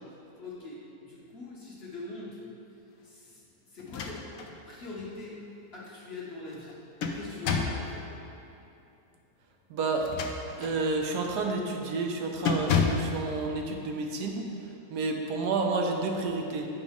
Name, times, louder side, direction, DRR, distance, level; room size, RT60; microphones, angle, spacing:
voice 1, 0.4-2.4 3.0-4.2 4.7-5.4 5.7-6.7 7.1-8.1, left 2 dB, 45° left, -5 dB, 1.1 m, -42 dB
sound 1, 3.8-4.5 5.0-5.1 6.5-7.9 9.9-10.8 11.3-11.5 11.9-12.1 12.5-13.2, left 5 dB, 70° left, 0.9 m, -30 dB
voice 2, 9.7-10.1 10.6-14.5 14.9-16.7, right 3 dB, 80° right, 2 dB, 1.3 m, -30 dB
8.1 x 5.1 x 3.6 m, 2.8 s
omnidirectional pair, 1.7 m